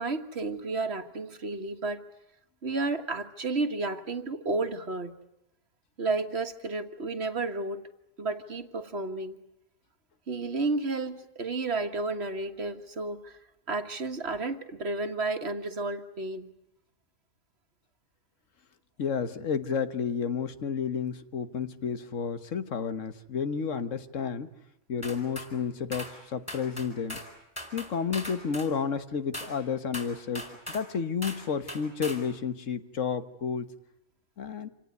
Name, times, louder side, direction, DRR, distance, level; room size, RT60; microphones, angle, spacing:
voice 1, 0.0-2.0 2.6-5.2 6.0-7.8 8.2-9.4 10.3-13.4 13.7-16.5, right 3 dB, 60° right, 7 dB, 1.8 m, -32 dB
voice 2, 19.0-24.5 24.9-27.2 27.7-33.7 34.4-34.7, left 6 dB, 90° left, 11 dB, 1.6 m, -31 dB
sound 1, 25.0-25.5 25.9-26.1 26.5-27.3 27.6-28.7 29.3-29.5 29.9-30.9 31.2-31.4 31.7-32.2, equal, 10° left, 4.6 m, -39 dB
27.0 x 18.0 x 9.5 m, 0.88 s
omnidirectional pair, 1.3 m